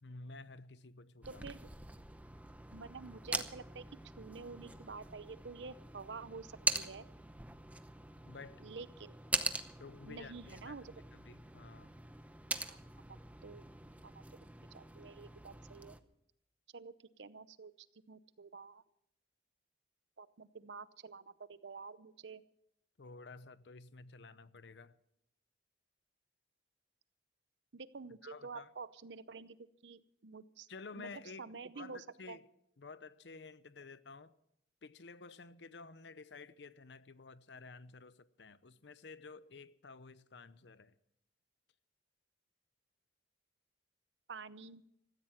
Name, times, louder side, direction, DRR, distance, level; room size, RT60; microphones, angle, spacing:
voice 1, 0.0-1.5 8.2-8.7 9.8-10.8 11.1-11.9 23.0-25.0 28.2-28.7 30.7-32.5 32.8-34.3 34.8-40.9, left 4 dB, 70° left, 0.7 m, -52 dB
sound 1, 1.2-16.0, right 2 dB, 10° right, 0.7 m, -43 dB
voice 2, 1.2-1.6 2.7-3.9 4.2-7.0 8.6-9.2 10.1-10.9 12.7-12.8 13.1-13.6 14.0-14.2 14.7-16.0 16.7-18.8 20.2-22.4 27.7-30.7 30.9-32.4 44.3-44.8, right 4 dB, 75° right, 0.7 m, -49 dB
16.0 x 14.5 x 5.9 m
head